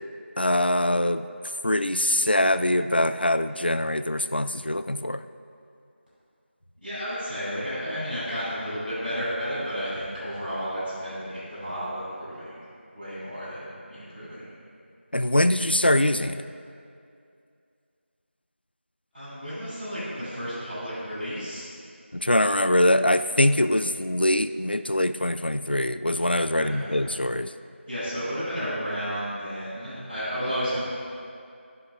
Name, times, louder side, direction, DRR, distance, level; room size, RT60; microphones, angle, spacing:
voice 1, 0.4-1.3 1.6-5.2 15.1-16.5 22.1-27.5, left 1 dB, 50° left, 12 dB, 0.3 m, -23 dB
voice 2, 6.8-12.5 12.9-14.5 19.1-21.6 26.5-26.9 27.8-30.8, equal, ahead, -34 dB, 2.8 m, -32 dB
13.5 x 10.0 x 2.8 m, 2.4 s
figure-of-eight pair, 180°, 7 cm